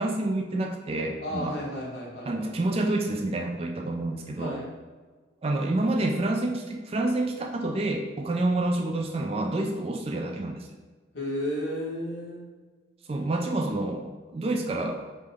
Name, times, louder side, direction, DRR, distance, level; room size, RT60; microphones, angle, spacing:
voice 1, 0.0-1.5 2.2-4.5 5.4-10.7 13.1-15.0, right 2 dB, 30° right, 2 dB, 0.3 m, -28 dB
voice 2, 1.2-2.8 4.4-4.7 11.1-12.4, equal, 60° left, -5 dB, 1.3 m, -33 dB
5.2 x 2.2 x 3.4 m, 1.4 s
head